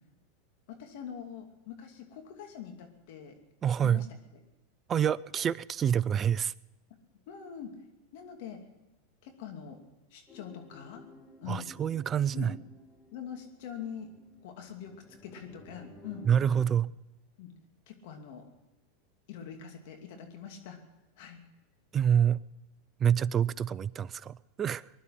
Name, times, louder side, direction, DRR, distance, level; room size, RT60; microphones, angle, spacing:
voice 1, 0.7-3.4 3.8-4.1 7.3-7.7 8.1-8.6 9.2-9.8 10.1-11.0 11.4-11.7 12.3-12.5 13.1-14.1 14.4-16.3 17.4-17.5 17.9-18.4 19.3-20.8 21.2-21.4, left 8 dB, 65° left, 2.6 m, -43 dB
voice 2, 3.6-4.1 4.9-6.5 11.5-12.5 16.2-16.9 21.9-22.4 23.0-24.9, right 8 dB, 30° right, 0.4 m, -27 dB
sound 1, 10.3-16.7, left 2 dB, 20° left, 1.9 m, -54 dB
20.5 x 11.5 x 5.9 m
hypercardioid pair, 100°, 0 cm